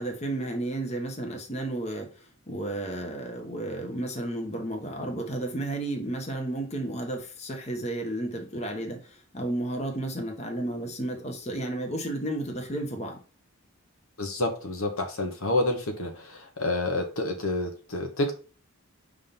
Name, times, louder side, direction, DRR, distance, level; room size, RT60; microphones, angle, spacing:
voice 1, 0.0-13.2, right 1 dB, 30° left, 2 dB, 1.2 m, -32 dB
voice 2, 14.2-18.3, left 2 dB, 70° left, 4 dB, 1.2 m, -29 dB
5.6 x 3.7 x 5.3 m, 0.37 s
head